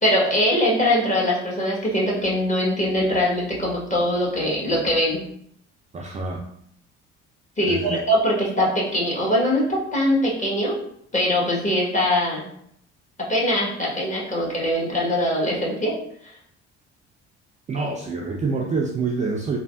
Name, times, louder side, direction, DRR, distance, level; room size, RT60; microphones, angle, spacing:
voice 1, 0.0-5.2 7.6-10.8 11.1-12.4 13.3-15.9, equal, 25° left, -4 dB, 1.3 m, -22 dB
voice 2, 5.9-6.4 7.6-8.0 17.7-19.6, right 4 dB, 25° right, -1 dB, 0.4 m, -26 dB
3.2 x 2.3 x 2.4 m, 0.69 s
hypercardioid pair, 55°, 33 cm